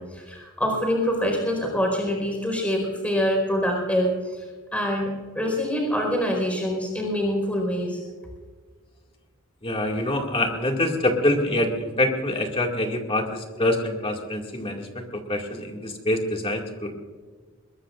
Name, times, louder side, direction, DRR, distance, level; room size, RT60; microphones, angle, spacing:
voice 1, 0.0-4.1 4.7-5.1 5.3-8.0, equal, 5° left, 0 dB, 4.7 m, -25 dB
voice 2, 9.6-17.0, left 1 dB, 25° left, 1 dB, 2.2 m, -25 dB
22.5 x 20.5 x 2.5 m, 1.5 s
head